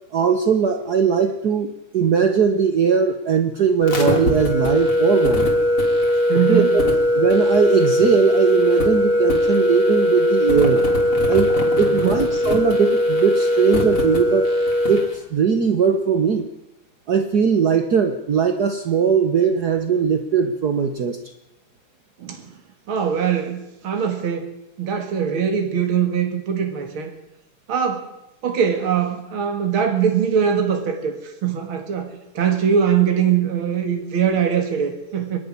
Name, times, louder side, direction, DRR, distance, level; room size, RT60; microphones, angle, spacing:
voice 1, 0.1-5.5 6.5-6.8 7.1-10.8 11.3-14.5 14.9-16.5 17.1-21.2, right 6 dB, 55° right, 7 dB, 1.5 m, -19 dB
sound 1, 3.8-15.1, left 1 dB, 85° left, 4.2 m, -19 dB
voice 2, 6.3-6.7 11.8-12.1 22.2-22.4 22.9-24.5 24.8-27.1 27.7-28.1 28.4-32.1 32.3-35.4, right 8 dB, 75° right, 4 dB, 2.8 m, -22 dB
24.5 x 11.0 x 9.7 m, 0.91 s
omnidirectional pair, 2.3 m